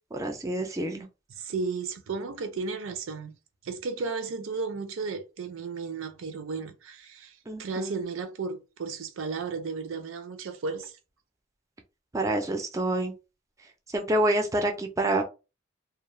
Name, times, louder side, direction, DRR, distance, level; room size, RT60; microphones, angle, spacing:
voice 1, 0.1-1.1 7.5-8.0 12.1-13.1 13.9-15.2, right 1 dB, 15° right, 0.3 m, -27 dB
voice 2, 1.3-3.3 3.6-10.9, right 4 dB, 85° right, 0.5 m, -34 dB
2.3 x 2.0 x 3.0 m
head